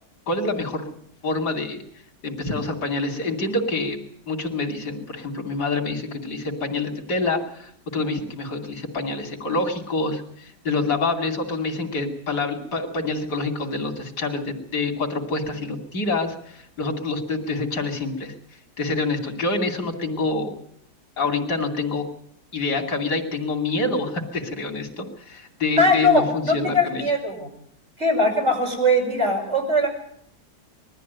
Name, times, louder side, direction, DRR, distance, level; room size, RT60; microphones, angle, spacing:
voice 1, 0.3-0.9 1.2-1.8 2.2-4.0 4.3-18.3 18.8-20.6 21.2-22.0 22.5-27.0, left 3 dB, 90° left, 4 dB, 3.3 m, -26 dB
voice 2, 25.8-27.5 28.0-29.9, left 1 dB, 40° right, 0 dB, 6.3 m, -20 dB
21.0 x 14.0 x 9.3 m, 0.69 s
omnidirectional pair, 1.7 m